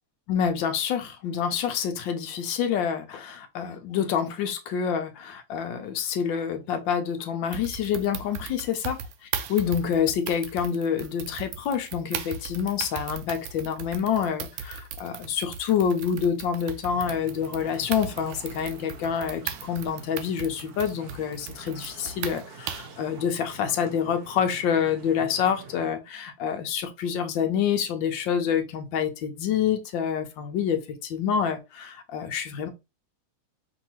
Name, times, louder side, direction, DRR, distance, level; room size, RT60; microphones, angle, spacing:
voice 1, 0.3-9.0 9.5-32.7, left 8 dB, 70° left, 1.2 m, -27 dB
sound 1, 7.5-23.0, right 7 dB, 85° right, 1.6 m, -38 dB
sound 2, 16.9-25.9, right 5 dB, 60° right, 1.1 m, -46 dB
5.4 x 2.6 x 2.9 m
omnidirectional pair, 2.4 m